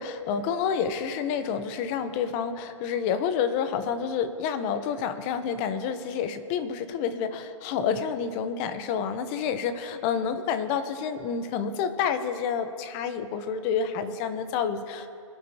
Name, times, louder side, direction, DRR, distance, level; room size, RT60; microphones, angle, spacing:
voice 1, 0.0-15.1, left 7 dB, 25° left, 10 dB, 0.7 m, -29 dB
23.0 x 11.0 x 2.8 m, 2.5 s
hypercardioid pair, 145°, 17 cm